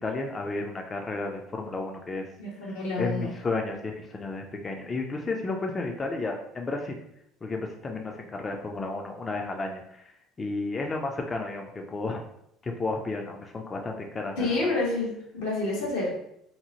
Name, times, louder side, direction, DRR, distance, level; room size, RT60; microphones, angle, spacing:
voice 1, 0.0-2.3 2.6-2.7 3.0-7.0 7.4-10.0 10.4-12.2 12.6-14.6, left 3 dB, 25° left, 2 dB, 0.3 m, -32 dB
voice 2, 2.4-3.3 14.3-16.2, left 2 dB, 90° left, -4 dB, 1.0 m, -28 dB
2.8 x 2.0 x 2.8 m, 0.77 s
supercardioid pair, 90°, 0 cm